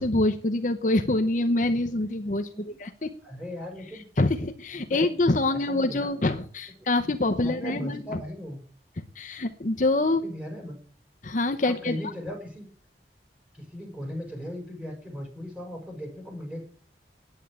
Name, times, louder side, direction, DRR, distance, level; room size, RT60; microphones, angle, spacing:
voice 1, 0.0-3.1 3.9-8.2 9.2-10.2 11.2-12.0, left 2 dB, 45° left, 6 dB, 0.8 m, -25 dB
voice 2, 2.5-4.0 4.7-5.1 5.5-6.1 6.8-8.6 10.2-10.8 11.6-12.6 13.5-16.6, left 1 dB, 5° right, 1 dB, 4.9 m, -38 dB
9.9 x 8.7 x 8.3 m, 0.43 s
head